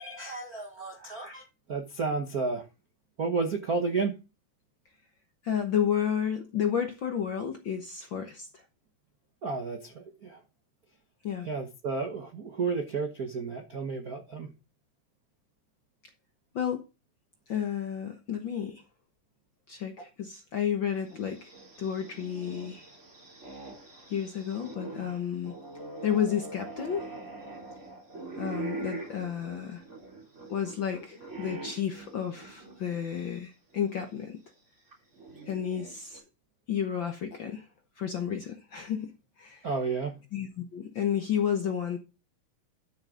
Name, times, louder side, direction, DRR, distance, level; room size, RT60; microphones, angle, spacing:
voice 1, 0.0-2.7 3.2-4.1 9.4-10.4 11.4-14.5 39.6-40.2, right 4 dB, 55° right, 1.0 m, -32 dB
voice 2, 5.4-8.5 11.2-11.5 16.5-16.8 17.5-18.8 19.7-22.9 24.1-25.5 26.0-27.0 28.4-29.8 30.5-34.4 35.5-36.2 36.7-37.7 38.0-39.7 40.3-42.0, left 8 dB, 60° left, 1.3 m, -31 dB
sound 1, 21.1-33.3 33.7-33.8 34.9-36.2, right 3 dB, 25° right, 3.2 m, -43 dB
12.0 x 6.5 x 3.8 m
omnidirectional pair, 3.6 m